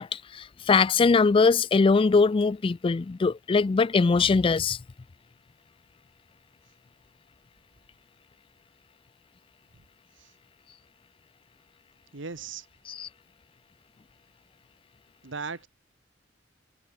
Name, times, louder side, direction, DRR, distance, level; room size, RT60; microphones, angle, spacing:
voice 1, 0.0-4.8 12.9-13.1, left 4 dB, 30° left, 0.3 m, -22 dB
voice 2, 12.1-12.6 15.2-15.7, right 5 dB, 85° right, 1.4 m, -36 dB
head